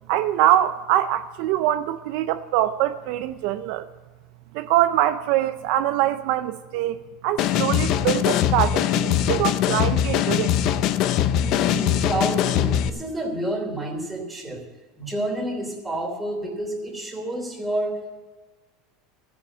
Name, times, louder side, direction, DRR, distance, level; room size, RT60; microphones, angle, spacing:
voice 1, 0.1-3.9 4.5-10.6, right 13 dB, 65° right, 0.5 m, -23 dB
sound 1, 7.4-12.9, left 10 dB, 55° left, 0.6 m, -22 dB
voice 2, 11.4-14.7 15.0-18.2, right 1 dB, 10° right, 2.9 m, -29 dB
13.0 x 7.0 x 8.6 m
supercardioid pair, 120°, 0 cm